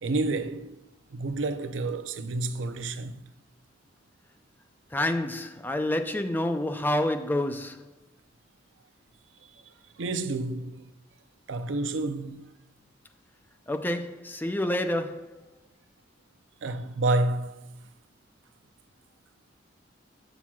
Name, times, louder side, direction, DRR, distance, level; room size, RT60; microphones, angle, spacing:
voice 1, 0.0-0.8 1.1-3.2 10.0-10.8 11.5-12.5 16.6-17.8, right 2 dB, 80° right, 0.6 m, -29 dB
voice 2, 4.9-7.9 13.7-15.4, left 1 dB, 10° left, 0.5 m, -28 dB
13.0 x 5.9 x 2.4 m
head